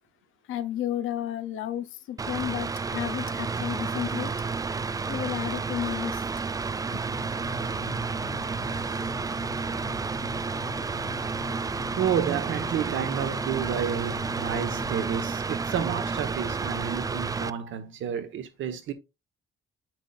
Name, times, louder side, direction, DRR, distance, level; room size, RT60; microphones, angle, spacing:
voice 1, 0.5-4.3 5.1-6.2 6.8-7.2 7.9-8.0, left 11 dB, 85° left, 0.9 m, -33 dB
Mechanical fan, 2.2-17.5, right 4 dB, 20° right, 0.3 m, -31 dB
sound 1, 7.1-14.9, left 8 dB, 40° left, 0.6 m, -43 dB
voice 2, 12.0-18.9, right 8 dB, 75° right, 1.2 m, -30 dB
8.2 x 6.1 x 2.4 m
cardioid pair, 90°, 20 cm